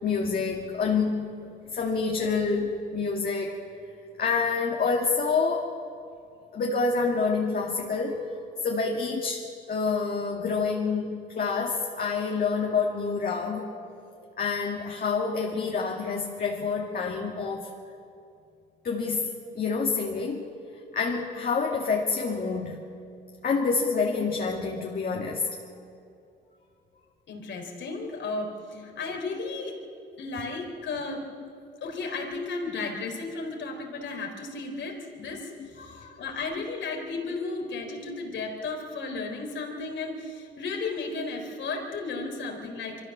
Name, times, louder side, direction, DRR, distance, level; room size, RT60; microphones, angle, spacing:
voice 1, 0.0-3.6 4.2-5.8 6.5-8.3 8.6-13.7 14.4-17.7 18.8-19.3 19.6-20.5 20.9-23.0 23.4-25.6 28.7-28.8 35.6-36.2, left 4 dB, 45° left, -1 dB, 2.3 m, -28 dB
voice 2, 27.3-29.8 30.2-31.2 31.8-35.5 35.8-43.0, left 3 dB, 65° left, 2 dB, 4.0 m, -34 dB
24.0 x 14.5 x 7.4 m, 2.6 s
cardioid pair, 90°, 20 cm